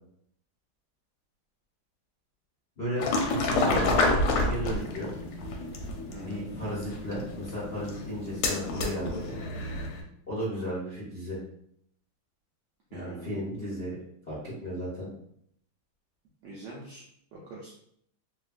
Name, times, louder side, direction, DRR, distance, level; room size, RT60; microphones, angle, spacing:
voice 1, 2.8-5.1 6.2-9.4 10.3-11.4 12.9-14.0 14.3-15.1, equal, 40° left, -9 dB, 1.0 m, -34 dB
sound 1, 3.0-10.0, left 2 dB, 85° left, 1.4 m, -29 dB
voice 2, 3.5-3.9 6.1-6.4 12.9-13.3 16.4-17.0 17.3-17.7, equal, 75° right, -4 dB, 1.0 m, -41 dB
3.3 x 2.3 x 2.4 m, 0.70 s
omnidirectional pair, 2.3 m